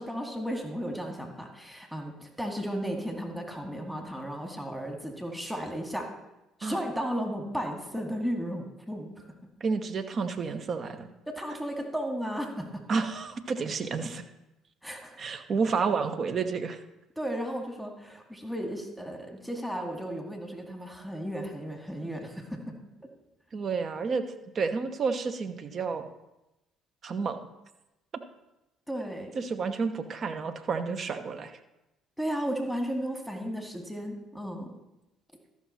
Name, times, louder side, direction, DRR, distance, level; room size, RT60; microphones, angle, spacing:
voice 1, 0.0-6.1 6.6-9.3 11.3-12.8 14.8-15.3 17.2-23.1 28.9-29.4 32.2-34.7, equal, ahead, 2 dB, 2.0 m, -34 dB
voice 2, 9.6-11.1 12.9-14.2 15.2-16.8 23.5-24.3 24.5-26.1 27.0-27.4 29.4-31.6, right 5 dB, 45° right, 9 dB, 1.0 m, -30 dB
13.5 x 6.1 x 4.3 m, 0.95 s
hypercardioid pair, 55°, 0 cm